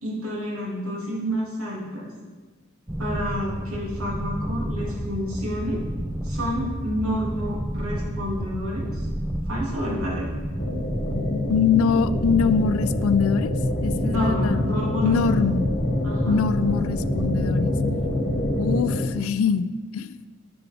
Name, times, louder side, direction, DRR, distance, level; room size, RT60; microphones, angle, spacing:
voice 1, 0.0-2.1 3.0-5.8 6.2-9.0 9.5-10.3 14.1-15.4 16.0-16.4, equal, 75° right, -4 dB, 2.4 m, -29 dB
sound 1, 2.9-18.8, right 1 dB, 5° right, 0.3 m, -30 dB
sound 2, 10.6-19.1, left 2 dB, 40° left, 0.8 m, -27 dB
voice 2, 11.5-13.5 13.8-14.7 15.0-15.7 16.3-17.7 18.6-20.2, left 6 dB, 70° left, 14 dB, 0.3 m, -23 dB
10.5 x 6.0 x 3.5 m, 1.3 s
head